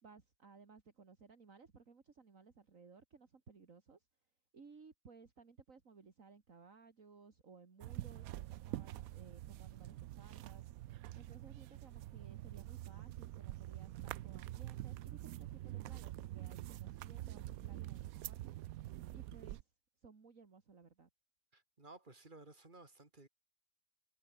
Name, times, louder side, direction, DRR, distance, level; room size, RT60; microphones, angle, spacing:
voice 1, 0.0-4.1 4.5-10.7 11.1-18.5 19.1-19.7 20.0-21.1, right 5 dB, 55° right, 2.6 m, -60 dB
sound 1, 7.8-19.6, right 15 dB, 70° right, 1.0 m, -46 dB
voice 2, 21.5-23.3, right 2 dB, 30° right, 2.6 m, -57 dB
omnidirectional pair, 1.7 m